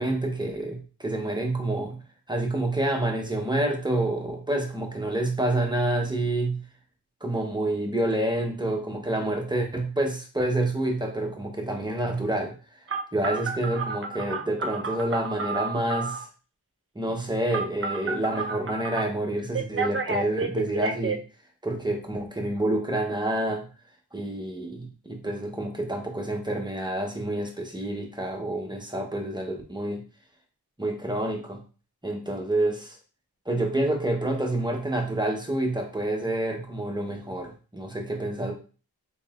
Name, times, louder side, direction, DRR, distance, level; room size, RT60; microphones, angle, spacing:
voice 1, 0.0-2.0 2.3-6.6 7.2-12.5 13.1-16.3 16.9-21.2 21.6-23.7 24.1-30.0 30.8-31.6 32.0-32.9 33.5-38.5, right 1 dB, 10° right, 1 dB, 1.0 m, -28 dB
Telephone, 12.9-16.2 17.5-19.0 19.5-21.2, right 4 dB, 35° right, 0.5 m, -30 dB
3.8 x 3.8 x 2.5 m, 0.36 s
wide cardioid pair, 50°, 39 cm